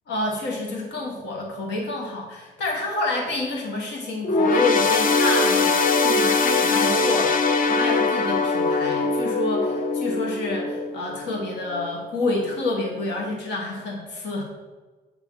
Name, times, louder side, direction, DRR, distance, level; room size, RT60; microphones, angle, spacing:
voice 1, 0.1-14.4, left 2 dB, 90° left, -1 dB, 1.5 m, -29 dB
sound 1, 4.2-11.9 12.3-12.5 13.4-13.5, left 3 dB, 50° left, 0.7 m, -22 dB
8.7 x 3.5 x 6.3 m, 1.3 s
cardioid pair, 85°, 18 cm